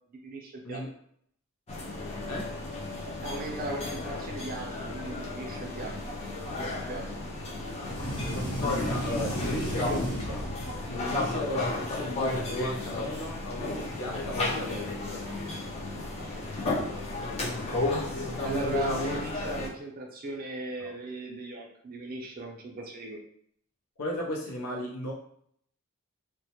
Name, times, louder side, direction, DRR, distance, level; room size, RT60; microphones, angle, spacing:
voice 1, 0.2-0.8 3.1-5.9 6.6-7.2 18.4-23.2, right 3 dB, 40° right, 1 dB, 0.5 m, -38 dB
sound 1, 1.7-19.7, left 2 dB, 25° left, 0.3 m, -33 dB
sound 2, 7.9-11.0, equal, 65° left, 1.1 m, -34 dB
voice 2, 8.5-10.5 10.9-15.2 20.8-20.9 24.0-25.1, left 1 dB, 90° left, -1 dB, 0.6 m, -36 dB
2.2 x 2.0 x 2.8 m, 0.67 s
head